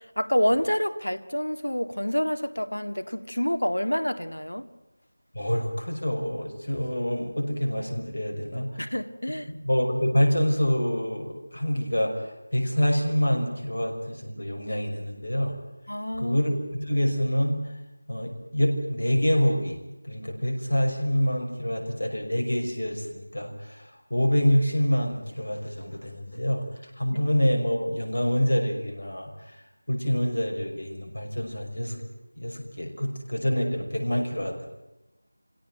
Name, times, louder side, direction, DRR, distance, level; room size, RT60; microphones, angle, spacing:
voice 1, 0.0-4.7 8.8-9.5 15.9-16.4 27.1-27.2, equal, 80° left, 9 dB, 1.9 m, -27 dB
voice 2, 5.3-8.8 9.6-15.6 16.2-17.6 18.1-26.6 27.0-32.0 32.4-34.7, equal, 60° left, 2 dB, 5.8 m, -26 dB
26.0 x 17.5 x 9.3 m, 0.97 s
figure-of-eight pair, 170°, 0 cm